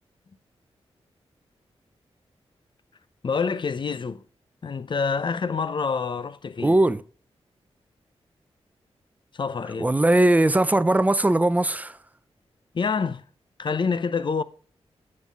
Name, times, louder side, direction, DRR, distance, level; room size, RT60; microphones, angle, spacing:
voice 1, 3.2-4.2 4.6-6.8 9.3-9.9 12.7-13.2 13.6-14.4, left 5 dB, 50° left, 0.7 m, -27 dB
voice 2, 6.6-7.0 9.8-12.0, right 1 dB, 15° right, 0.6 m, -20 dB
9.5 x 7.7 x 3.6 m
wide cardioid pair, 85°, 11 cm